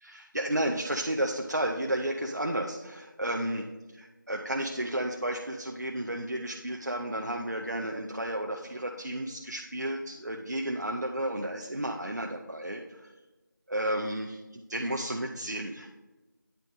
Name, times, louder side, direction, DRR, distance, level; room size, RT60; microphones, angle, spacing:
voice 1, 0.0-3.7 3.9-13.1 13.7-16.0, right 1 dB, 60° right, 1 dB, 0.5 m, -32 dB
9.0 x 3.1 x 5.1 m, 1.1 s
figure-of-eight pair, 175°, 11 cm